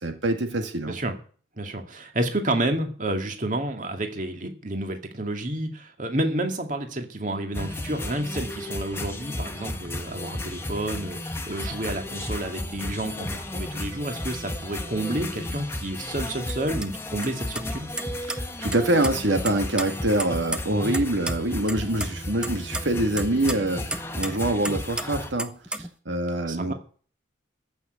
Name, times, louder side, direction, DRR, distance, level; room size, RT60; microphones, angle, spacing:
voice 1, 0.0-1.0 18.3-26.7, right 1 dB, 75° right, 5 dB, 2.0 m, -25 dB
voice 2, 0.8-1.1 1.6-17.9 26.5-26.7, right 1 dB, 40° right, 5 dB, 2.3 m, -30 dB
sound 1, 7.5-25.3, left 1 dB, 15° left, 1.3 m, -34 dB
sound 2, 16.5-16.6 16.8-16.9 17.2-17.3 17.6-18.4 18.7-19.1 19.5-21.0 21.3-21.4 21.7-22.1 22.4-24.4 24.6-25.1 25.4-25.9, right 1 dB, 5° right, 0.8 m, -31 dB
15.0 x 6.4 x 9.8 m, 0.42 s
head